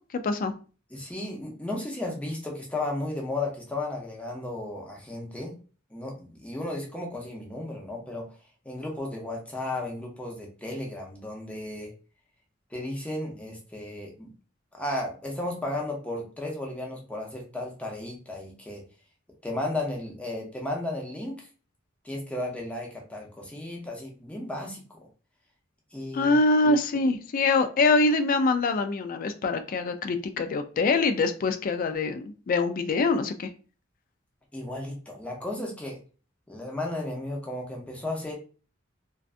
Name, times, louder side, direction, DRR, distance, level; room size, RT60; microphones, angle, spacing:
voice 1, 0.9-5.5 5.9-8.4 8.6-11.9 12.7-14.3 14.8-18.8 19.4-21.5 22.0-25.0 25.9-26.3 34.5-36.0 36.5-38.3, left 2 dB, 5° left, -1 dB, 0.6 m, -34 dB
voice 2, 26.1-33.5, left 3 dB, 45° left, 9 dB, 0.3 m, -24 dB
2.5 x 2.3 x 2.4 m, 0.37 s
head